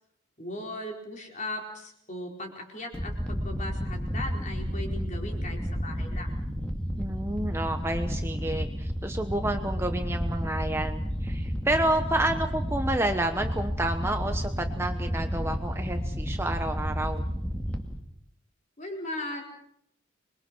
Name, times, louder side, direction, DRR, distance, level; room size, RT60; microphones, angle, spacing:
voice 1, 0.4-6.3 18.8-19.4, left 1 dB, 35° left, 1 dB, 4.7 m, -38 dB
sound 1, 2.9-18.0, equal, 5° left, 2.3 m, -31 dB
voice 2, 7.0-17.3, right 1 dB, 10° right, 5 dB, 1.1 m, -30 dB
26.5 x 22.5 x 6.3 m, 0.75 s
head